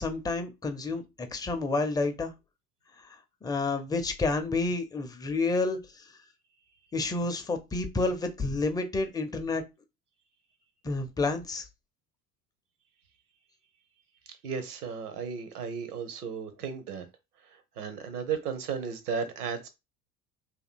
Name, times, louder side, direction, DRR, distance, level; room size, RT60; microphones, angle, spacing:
voice 1, 0.0-2.3 3.4-5.8 6.9-9.6 10.8-11.6, left 3 dB, 10° left, 0.5 m, -29 dB
voice 2, 14.4-17.0 17.4-19.7, right 6 dB, 70° right, 1.0 m, -35 dB
3.1 x 2.7 x 4.1 m
figure-of-eight pair, 70°, 48 cm